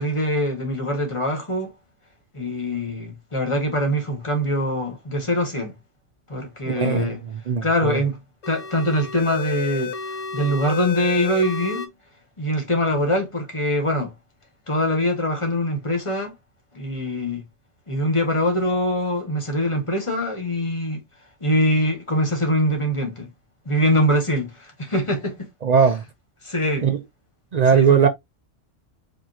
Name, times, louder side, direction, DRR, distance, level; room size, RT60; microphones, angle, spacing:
voice 1, 0.0-1.7 2.3-5.7 6.3-7.2 7.6-8.2 8.5-10.0 10.3-11.9 12.4-14.1 14.7-16.3 16.7-17.4 17.9-21.0 21.4-23.3 23.6-25.5 26.4-26.9 27.7-28.1, equal, 25° left, 1.2 m, -23 dB
voice 2, 6.7-7.1 7.5-8.0 25.6-26.0 26.8-27.0 27.5-28.1, right 6 dB, 60° right, 0.4 m, -18 dB
sound 1, 8.4-11.9, left 6 dB, 40° left, 0.5 m, -31 dB
5.1 x 2.9 x 2.7 m
omnidirectional pair, 1.3 m